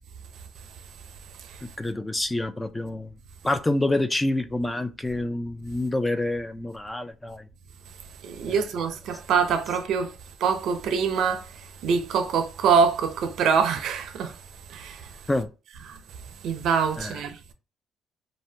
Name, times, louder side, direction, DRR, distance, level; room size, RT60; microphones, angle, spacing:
voice 1, 1.8-3.1 3.4-7.5 15.3-15.5 17.0-17.2, left 1 dB, 15° left, 0.4 m, -27 dB
voice 2, 8.2-10.1 10.4-11.5 11.8-14.3 14.7-15.1 15.9-16.0 16.4-17.4, right 6 dB, 70° right, 0.5 m, -24 dB
2.6 x 2.1 x 3.2 m
supercardioid pair, 80°, 0 cm